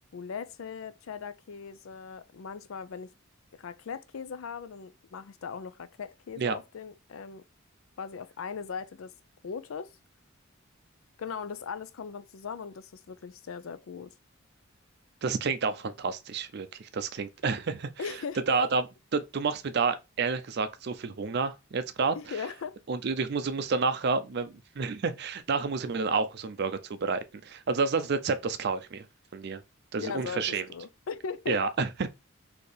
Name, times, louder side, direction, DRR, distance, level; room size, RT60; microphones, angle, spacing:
voice 1, 0.1-3.1 3.6-7.4 8.0-9.1 9.4-9.9 11.2-14.1 18.0-18.7 22.1-22.8 30.0-31.6, left 6 dB, 75° left, 0.4 m, -39 dB
voice 2, 15.2-17.9 18.5-18.9 19.1-22.2 22.9-29.0 29.3-29.6 29.9-30.7 31.5-32.1, right 4 dB, 50° right, 0.5 m, -29 dB
4.3 x 2.8 x 3.3 m
head